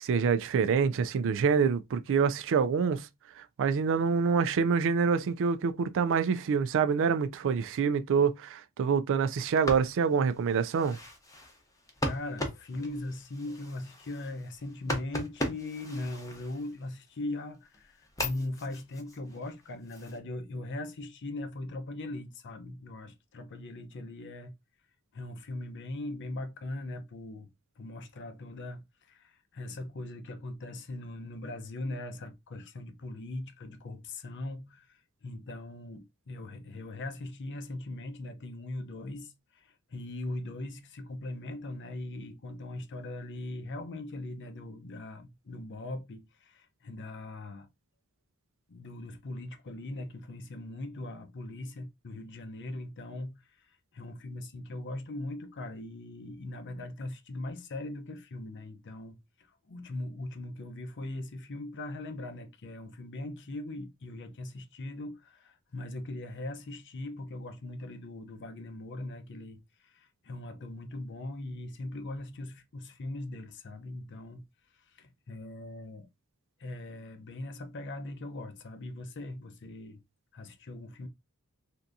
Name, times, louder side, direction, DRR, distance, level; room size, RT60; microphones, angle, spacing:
voice 1, 0.0-3.1 3.4-11.0, right 6 dB, 60° right, 0.4 m, -26 dB
sound 1, 9.4-17.1 17.5-20.2, left 1 dB, 15° left, 0.7 m, -39 dB
voice 2, 12.1-24.5 25.1-27.5 27.8-47.7 48.7-74.4 74.7-76.1 76.6-80.0 80.3-81.1, left 2 dB, 55° left, 0.6 m, -40 dB
3.4 x 2.7 x 2.5 m
head